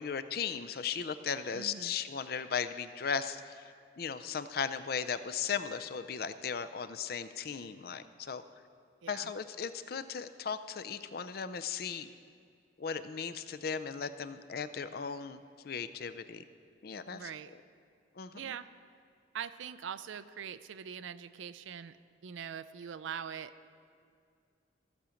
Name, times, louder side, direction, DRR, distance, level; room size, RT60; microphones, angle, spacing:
voice 1, 0.0-8.4 9.1-12.1 12.8-16.4 16.8-17.3 18.2-18.6, left 6 dB, 50° left, 12 dB, 0.4 m, -37 dB
voice 2, 1.5-1.9 9.0-9.3 17.1-17.5 18.3-18.7 19.3-22.0 22.2-23.5, right 8 dB, 85° right, 14 dB, 0.4 m, -42 dB
15.0 x 5.1 x 7.0 m, 2.2 s
head